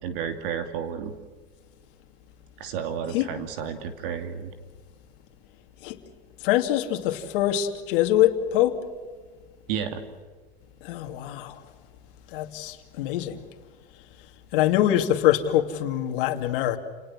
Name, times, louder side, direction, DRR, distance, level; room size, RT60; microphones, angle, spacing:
voice 1, 0.0-1.1 2.6-4.5 9.7-10.0, right 8 dB, 60° right, 2.6 m, -31 dB
voice 2, 6.4-8.8 10.8-11.6 12.3-13.4 14.5-16.8, left 12 dB, 60° left, 2.6 m, -24 dB
29.5 x 19.5 x 7.5 m
supercardioid pair, 155°, 30 cm